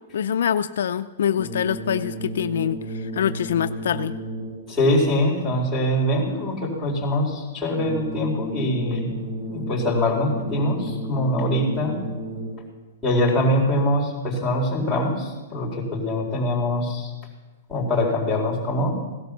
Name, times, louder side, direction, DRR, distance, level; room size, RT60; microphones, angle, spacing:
voice 1, 0.1-4.1, left 9 dB, 75° left, 11 dB, 0.6 m, -25 dB
sound 1, 1.3-4.8 7.7-12.8, right 1 dB, 25° right, 5.3 m, -33 dB
voice 2, 4.7-9.1 9.4-12.0 13.0-17.1 17.7-18.9, left 1 dB, ahead, -8 dB, 4.3 m, -23 dB
17.0 x 12.0 x 6.9 m, 1.2 s
hypercardioid pair, 155°, 0 cm